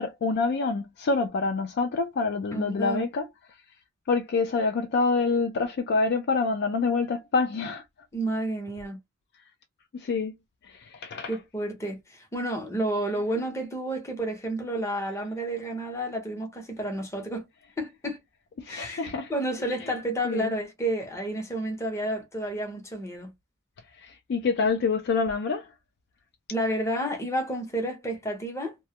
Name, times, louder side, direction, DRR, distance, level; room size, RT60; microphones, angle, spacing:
voice 1, 0.0-3.3 4.1-7.8 9.9-10.3 10.6-11.4 18.6-19.3 19.8-19.9 20.2-20.5 24.0-25.7, left 4 dB, 50° left, 0.3 m, -26 dB
voice 2, 2.5-3.0 8.1-9.0 11.3-17.5 17.8-18.2 18.7-23.3 26.5-28.8, right 1 dB, 15° left, 0.7 m, -30 dB
2.2 x 2.1 x 2.7 m
head